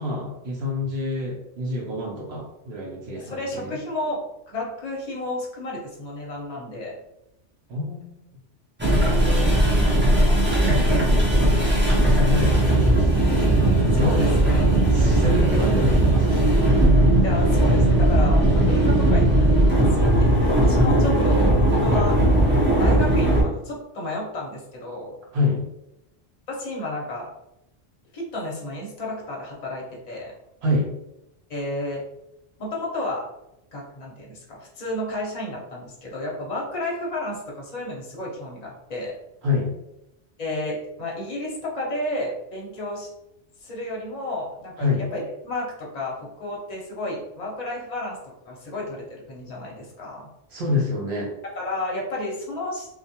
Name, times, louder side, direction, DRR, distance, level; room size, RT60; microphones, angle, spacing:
voice 1, 0.0-3.8 7.7-8.1 8.8-9.5 10.5-13.3 13.9-14.4 14.9-16.4 25.3-25.6 30.6-30.9 39.4-39.7 44.8-45.0 50.5-51.3, left 2 dB, 65° right, -3 dB, 0.8 m, -27 dB
voice 2, 3.1-4.2 4.5-7.0 9.2-9.4 10.9-11.0 14.0-14.7 15.3-15.6 17.2-22.2 22.8-25.1 26.5-27.3 28.1-30.3 31.5-32.0 32.6-33.2 33.7-39.1 40.4-43.1 43.6-48.2 48.4-50.3 51.5-52.9, left 1 dB, 40° left, -3 dB, 0.7 m, -32 dB
sound 1, 8.8-23.4, right 1 dB, 20° right, 0.3 m, -18 dB
2.3 x 2.2 x 2.7 m, 0.86 s
omnidirectional pair, 1.2 m